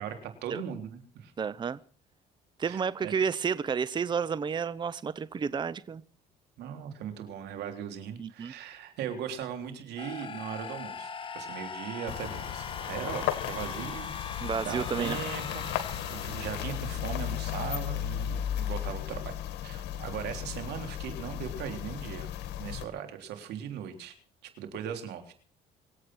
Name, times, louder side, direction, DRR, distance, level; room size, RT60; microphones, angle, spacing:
voice 1, 0.0-1.3 2.6-3.1 6.6-15.7 16.1-19.4 19.6-22.3 22.6-24.1 24.6-25.3, right 8 dB, 80° right, 6 dB, 3.6 m, -39 dB
voice 2, 1.4-1.8 2.6-6.0 8.2-8.5 14.4-15.2, right 6 dB, 25° right, 17 dB, 0.7 m, -31 dB
sound 1, 10.0-17.9, left 5 dB, 30° left, 1.8 m, -41 dB
sound 2, 12.1-22.8, left 11 dB, 85° left, 2.0 m, -35 dB
25.5 x 8.6 x 6.2 m, 0.41 s
cardioid pair, 110°, 17 cm